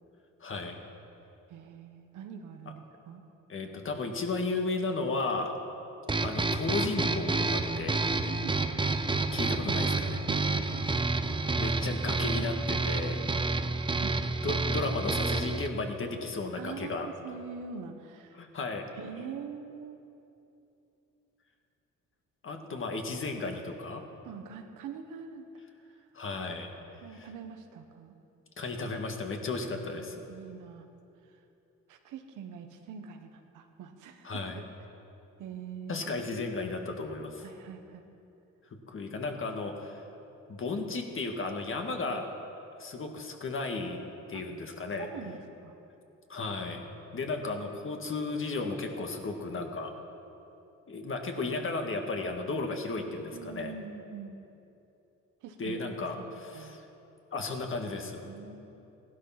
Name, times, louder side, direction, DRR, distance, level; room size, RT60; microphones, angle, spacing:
voice 1, 0.4-0.8 3.5-5.5 6.2-8.0 9.3-10.2 11.5-13.2 14.4-17.1 18.4-18.9 22.4-24.0 26.1-26.7 27.2-27.3 28.6-30.2 34.2-34.6 35.9-37.4 38.9-40.0 40.5-42.2 42.8-44.0 44.3-45.1 46.3-49.9 50.9-53.7 55.6-56.8 57.3-58.2, left 3 dB, 45° left, 3 dB, 1.9 m, -34 dB
voice 2, 1.5-3.2 8.2-8.8 10.3-11.0 14.0-14.3 16.5-18.4 18.9-20.0 24.2-25.5 25.8-26.1 27.0-28.2 29.8-30.9 31.9-34.6 35.4-36.0 37.4-38.0 41.8-42.2 44.3-44.5 45.0-45.8 53.3-54.4 55.4-56.8 58.2-58.7, right 6 dB, 85° right, 5 dB, 1.3 m, -44 dB
sound 1, 6.1-15.7, right 3 dB, 15° right, 0.7 m, -29 dB
16.0 x 12.0 x 5.9 m, 2.9 s
cardioid pair, 90°, 30 cm